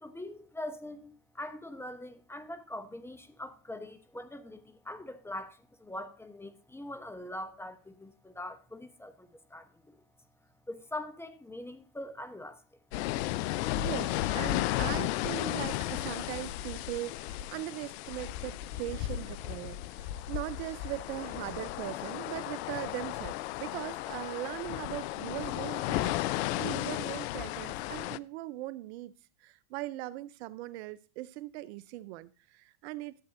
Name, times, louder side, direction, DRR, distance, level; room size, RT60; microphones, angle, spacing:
voice 1, 0.0-10.0 10.7-12.6 13.6-13.7, left 1 dB, 5° left, 0.8 m, -43 dB
sound 1, 12.9-28.2, left 15 dB, 55° left, 0.5 m, -34 dB
voice 2, 13.8-29.1 29.4-33.2, right 16 dB, 55° right, 0.5 m, -40 dB
12.5 x 7.7 x 2.6 m
hypercardioid pair, 100°, 40 cm